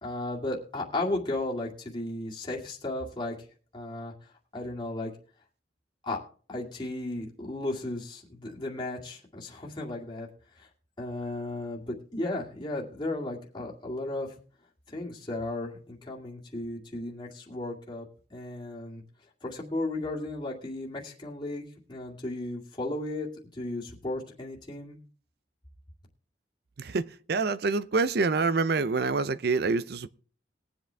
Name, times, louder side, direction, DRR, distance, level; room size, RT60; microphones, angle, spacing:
voice 1, 0.0-3.4 3.7-4.1 4.5-5.1 6.0-6.2 6.5-10.3 10.6-10.7 11.0-14.3 14.9-18.1 18.3-19.0 19.4-21.6 21.9-23.3 23.5-25.0, left 2 dB, 25° left, 2.1 m, -34 dB
voice 2, 26.8-30.1, right 4 dB, 55° right, 0.5 m, -26 dB
20.5 x 7.9 x 3.4 m
head